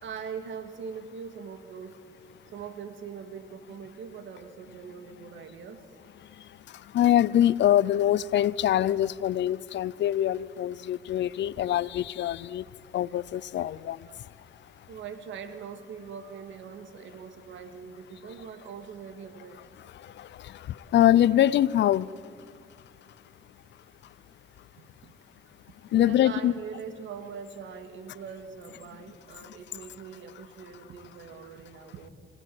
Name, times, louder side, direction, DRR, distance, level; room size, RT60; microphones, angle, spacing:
voice 1, 0.0-2.0 2.5-5.9 14.1-14.2 14.9-19.7 24.8-25.2 25.9-32.1, right 6 dB, 75° right, 2.0 m, -42 dB
voice 2, 6.4-12.7 12.9-14.1 20.0-22.1 25.9-26.5 29.4-29.6, left 12 dB, 65° left, 0.6 m, -24 dB
24.0 x 17.0 x 7.7 m
cardioid pair, 90°, 20 cm